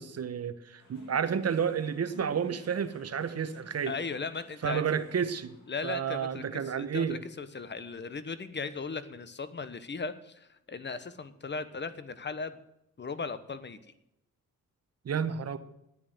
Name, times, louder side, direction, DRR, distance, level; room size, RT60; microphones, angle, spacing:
voice 1, 0.0-3.9 4.6-5.5 5.8-7.2 15.0-15.6, right 7 dB, 50° right, 11 dB, 1.1 m, -31 dB
sound 1, 0.8-9.2, equal, 65° left, 6.2 m, -56 dB
voice 2, 3.8-4.8 5.7-12.6 13.0-13.8, left 4 dB, 35° left, 13 dB, 1.1 m, -37 dB
9.9 x 9.0 x 7.9 m, 0.83 s
cardioid pair, 95°, 33 cm